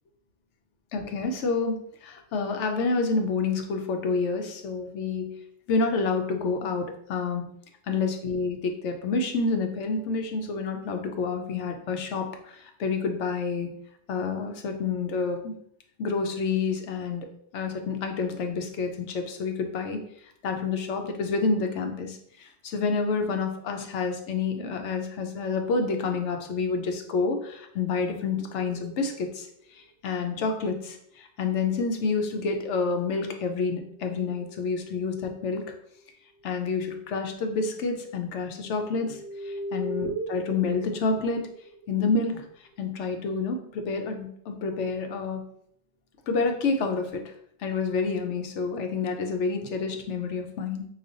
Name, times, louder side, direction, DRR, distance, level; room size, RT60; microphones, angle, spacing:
voice 1, 0.9-5.4 5.7-7.4 7.9-13.7 14.1-15.5 16.0-17.3 17.5-20.0 20.4-29.5 29.8-35.7 36.4-41.4 41.9-42.4 42.8-45.4 46.3-47.3 47.6-50.9, left 4 dB, 70° left, 5 dB, 1.0 m, -28 dB
sound 1, 27.6-29.5 31.8-32.7 33.3-35.6 36.4-36.7 36.9-37.4 38.1-42.8, right 1 dB, 65° right, 0.9 m, -41 dB
4.9 x 2.4 x 3.9 m, 0.69 s
omnidirectional pair, 1.3 m